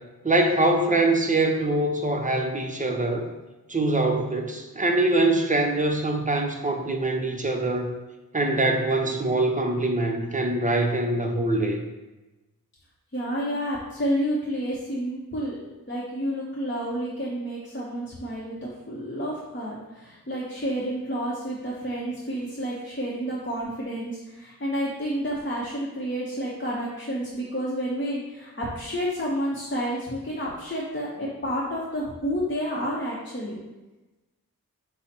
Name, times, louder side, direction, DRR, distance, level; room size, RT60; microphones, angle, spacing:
voice 1, 0.2-3.3 3.7-7.9 8.3-11.8, right 2 dB, 20° right, 2 dB, 0.6 m, -23 dB
voice 2, 13.1-15.6 15.9-33.6, equal, 30° left, -5 dB, 0.7 m, -30 dB
5.5 x 2.0 x 4.2 m, 1.1 s
wide cardioid pair, 60°, 37 cm